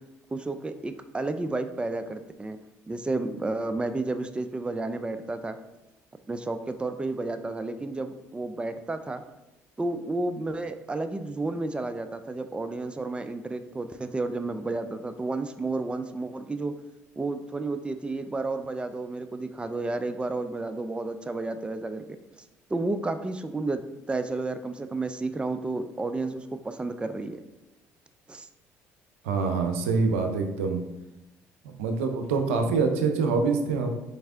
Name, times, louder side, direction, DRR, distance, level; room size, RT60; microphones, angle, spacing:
voice 1, 0.3-2.6 2.9-5.6 6.3-9.2 9.8-16.8 17.2-22.2 22.7-23.8 24.1-27.4 28.3-28.5, right 2 dB, 15° right, 9 dB, 0.4 m, -31 dB
voice 2, 29.2-30.8 31.8-33.9, right 4 dB, 90° right, 5 dB, 0.5 m, -25 dB
4.3 x 3.3 x 3.6 m, 0.96 s
hypercardioid pair, 65°, 7 cm